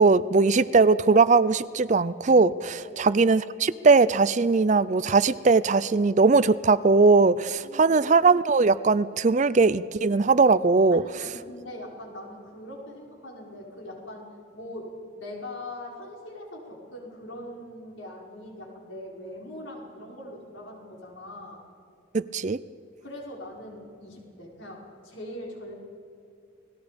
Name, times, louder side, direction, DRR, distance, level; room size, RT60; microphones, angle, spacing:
voice 1, 0.0-11.0 22.1-22.6, right 4 dB, 35° right, 16 dB, 0.4 m, -20 dB
voice 2, 7.4-8.0 10.9-21.6 23.0-25.7, left 1 dB, 70° left, -1 dB, 5.4 m, -41 dB
29.0 x 19.5 x 5.2 m, 2.5 s
head